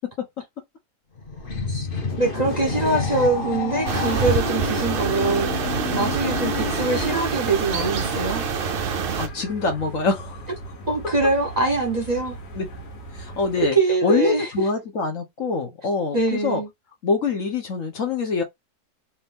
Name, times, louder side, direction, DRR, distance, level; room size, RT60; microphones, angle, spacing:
sound 1, 1.2-7.4, left 4 dB, 40° left, 1.1 m, -29 dB
voice 1, 2.2-8.4 10.9-12.4 13.6-14.5 16.1-16.7, right 3 dB, 30° right, 1.0 m, -23 dB
sound 2, 3.9-9.3, right 6 dB, 60° right, 0.6 m, -26 dB
sound 3, 6.3-13.7, right 2 dB, 85° left, 1.8 m, -39 dB
voice 2, 9.2-10.4 12.5-12.7 13.2-13.8 14.0-16.6 17.0-18.4, left 4 dB, 55° left, 1.4 m, -24 dB
3.6 x 3.0 x 3.5 m
omnidirectional pair, 1.7 m